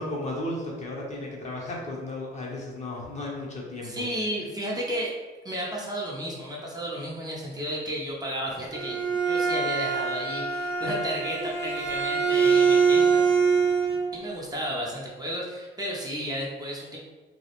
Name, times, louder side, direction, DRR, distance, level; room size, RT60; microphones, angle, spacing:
voice 1, 0.0-4.1, left 1 dB, 35° left, -3 dB, 0.6 m, -34 dB
voice 2, 3.8-5.1 5.4-13.3 14.1-17.0, equal, 20° right, -4 dB, 0.5 m, -33 dB
Bowed string instrument, 8.5-14.1, right 5 dB, 70° right, 0.7 m, -24 dB
2.2 x 2.0 x 2.8 m, 1.3 s
cardioid pair, 90°, 20 cm